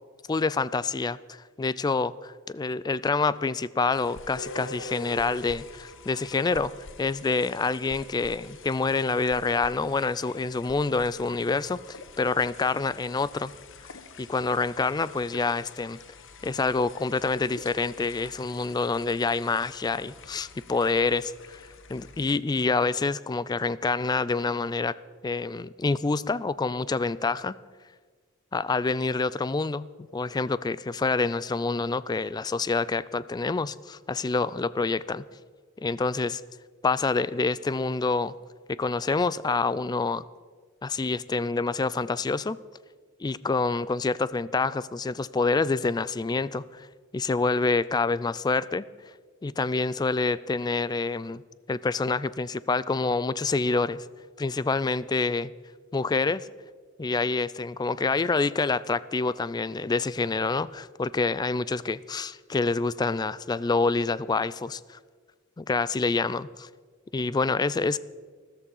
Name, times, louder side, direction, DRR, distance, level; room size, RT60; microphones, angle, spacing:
voice 1, 0.3-6.7 7.0-13.5 14.2-16.0 16.4-21.6 21.9-25.0 25.2-27.5 28.5-29.9 30.1-35.2 35.8-36.4 36.8-38.3 38.7-40.2 40.8-42.6 43.2-46.9 47.1-48.9 49.4-51.4 51.7-54.1 54.4-55.5 55.9-56.5 57.0-65.0 65.6-66.7 67.1-68.0, left 3 dB, 20° left, 18 dB, 0.3 m, -27 dB
sound 1, 3.9-22.3, left 3 dB, 65° left, 1.0 m, -46 dB
13.5 x 13.5 x 5.5 m, 1.5 s
head